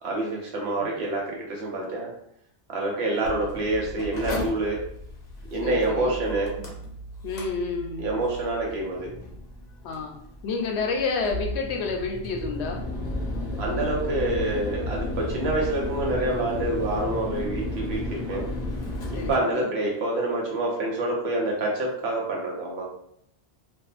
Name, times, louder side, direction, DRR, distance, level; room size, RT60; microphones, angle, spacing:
voice 1, 0.0-2.1 2.7-4.8 5.5-6.5 8.0-9.1 13.6-18.4 19.1-22.9, right 2 dB, 75° right, -2 dB, 1.0 m, -27 dB
voice 2, 3.2-3.5 5.6-6.2 6.6-6.7 7.2-8.1 9.8-10.1 10.4-12.8 19.1-19.7, left 4 dB, 85° left, 2 dB, 0.9 m, -30 dB
Mechanical fan, 3.3-19.3, left 1 dB, 50° left, 0.7 m, -34 dB
2.6 x 2.4 x 2.4 m, 0.71 s
omnidirectional pair, 1.1 m